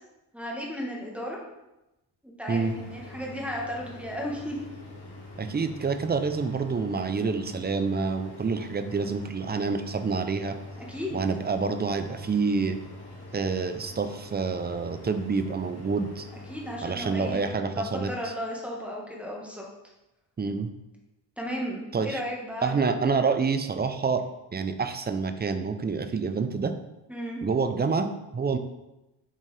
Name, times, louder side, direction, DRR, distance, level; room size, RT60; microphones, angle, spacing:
voice 1, 0.3-1.4 2.2-4.6 10.8-11.3 16.5-19.6 21.4-23.0 27.1-27.4, equal, 5° right, -3 dB, 1.4 m, -35 dB
sound 1, 2.5-17.5, left 2 dB, 60° left, 2.0 m, -44 dB
voice 2, 5.4-10.6 11.1-12.8 13.3-16.3 16.8-18.1 20.4-20.7 21.9-22.2 22.6-24.2 24.5-26.7 27.4-28.6, right 4 dB, 25° right, 9 dB, 0.5 m, -27 dB
7.3 x 4.0 x 3.3 m, 0.95 s
cardioid pair, 85°, 43 cm